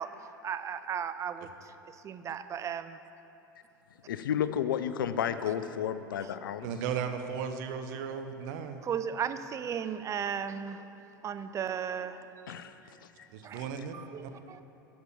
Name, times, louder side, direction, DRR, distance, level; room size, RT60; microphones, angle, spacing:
voice 1, 0.0-1.7 2.0-3.0 8.8-10.9 11.2-12.3 13.4-13.6 13.9-14.6, right 8 dB, 25° right, 11 dB, 0.4 m, -35 dB
voice 2, 4.1-6.7 12.5-13.3, left 9 dB, 75° left, 12 dB, 0.4 m, -32 dB
voice 3, 6.6-8.8 13.3-13.9 14.2-14.3, right 7 dB, 60° right, 7 dB, 0.7 m, -35 dB
7.4 x 6.0 x 7.1 m, 3.0 s
hypercardioid pair, 80°, 11 cm